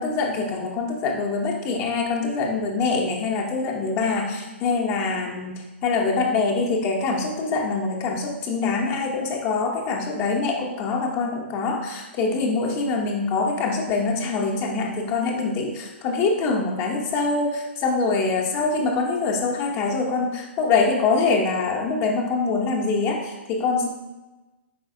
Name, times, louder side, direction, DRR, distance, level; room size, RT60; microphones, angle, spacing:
voice 1, 0.0-23.9, left 4 dB, 30° left, 1 dB, 0.6 m, -24 dB
4.8 x 3.9 x 2.6 m, 1.1 s
figure-of-eight pair, 120°, 7 cm